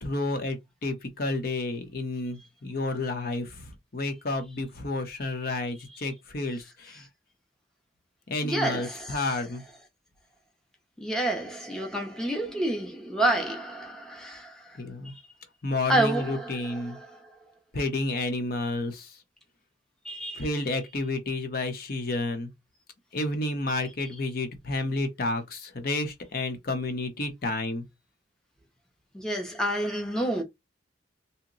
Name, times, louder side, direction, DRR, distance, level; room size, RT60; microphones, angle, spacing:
voice 1, 0.0-3.5 3.9-7.0 8.3-9.6 14.8-15.1 15.6-17.0 17.7-19.1 20.4-22.5 23.1-27.8, left 2 dB, 50° left, 0.7 m, -30 dB
voice 2, 8.4-9.4 11.0-14.6 15.0-15.1 15.9-17.2 20.0-20.5 29.1-30.4, right 1 dB, 5° left, 0.6 m, -29 dB
2.8 x 2.1 x 3.7 m
head